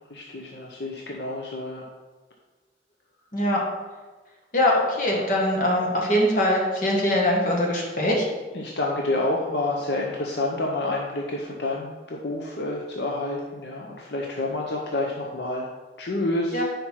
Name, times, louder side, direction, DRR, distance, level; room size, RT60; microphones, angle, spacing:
voice 1, 0.1-1.8 5.1-5.2 8.5-15.7 16.0-16.6, left 2 dB, 70° left, -1 dB, 0.7 m, -28 dB
voice 2, 4.5-8.3 16.5-16.6, left 1 dB, 50° left, -2 dB, 1.3 m, -22 dB
5.1 x 4.6 x 5.7 m, 1.3 s
head